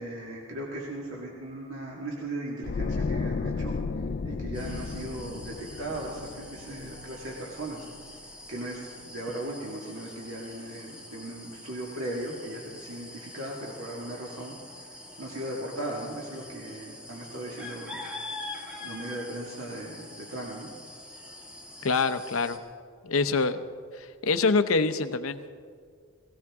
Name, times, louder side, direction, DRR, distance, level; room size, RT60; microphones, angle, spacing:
voice 1, 0.0-3.7 4.2-7.9 8.5-14.5 15.2-18.0 18.8-20.7, right 1 dB, 70° right, -3 dB, 2.0 m, -37 dB
sound 1, 2.6-7.7 8.0-8.2, left 4 dB, 45° left, 0.3 m, -33 dB
sound 2, 4.5-22.6, left 2 dB, 5° right, 1.4 m, -45 dB
voice 2, 21.8-22.6 23.0-23.6 24.0-25.6, left 4 dB, 70° left, 10 dB, 0.7 m, -25 dB
18.0 x 17.5 x 3.6 m, 2.1 s
head